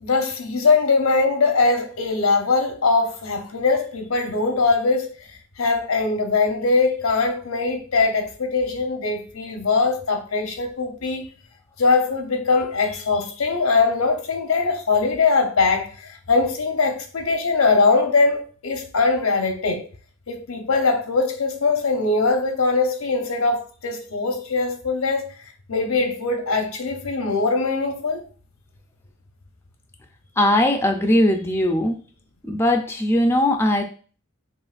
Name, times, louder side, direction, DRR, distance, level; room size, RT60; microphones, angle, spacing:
voice 1, 0.0-5.1 5.6-11.3 11.8-19.9 20.3-25.3 25.7-28.2, left 4 dB, 90° left, 0.9 m, -21 dB
voice 2, 30.4-32.0 32.5-33.8, left 1 dB, 10° left, 0.5 m, -19 dB
6.3 x 2.5 x 2.5 m
head